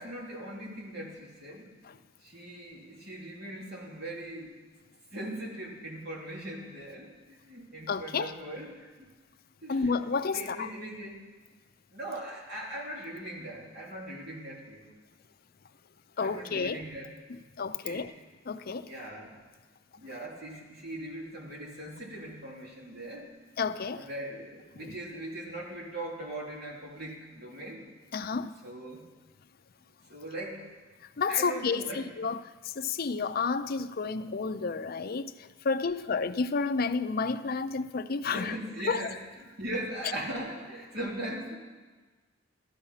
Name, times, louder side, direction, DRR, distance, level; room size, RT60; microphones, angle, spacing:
voice 1, 0.0-1.7 2.2-4.6 5.1-9.0 9.6-11.2 11.9-14.9 16.2-17.1 17.8-18.1 18.8-19.3 20.0-23.3 23.9-27.8 28.6-29.0 30.1-30.7 31.3-32.0 38.2-39.1 39.4-41.6, right 1 dB, 55° right, -3 dB, 3.2 m, -40 dB
voice 2, 7.9-8.3 9.7-10.7 16.2-16.8 17.3-18.1 18.5-18.9 23.6-24.1 24.8-25.0 28.1-28.5 31.0-38.6 38.9-39.0, left 4 dB, 50° left, 11 dB, 0.5 m, -31 dB
15.0 x 13.0 x 5.7 m, 1.3 s
head